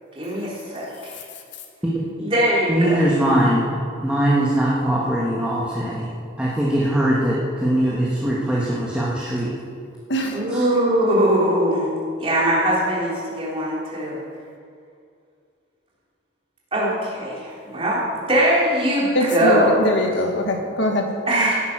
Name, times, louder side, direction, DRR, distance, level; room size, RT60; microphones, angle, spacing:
voice 1, 0.2-1.1 2.2-3.0 10.3-11.9 12.2-14.2 16.7-18.0 18.3-19.7 21.3-21.6, right 1 dB, 25° right, -6 dB, 3.7 m, -21 dB
voice 2, 1.8-2.3 2.7-3.7 4.0-6.1 6.4-9.5 10.5-10.6, right 1 dB, 5° right, -6 dB, 1.6 m, -21 dB
voice 3, 19.2-21.1, equal, 60° left, 2 dB, 1.7 m, -21 dB
16.5 x 9.5 x 6.2 m, 2.3 s
head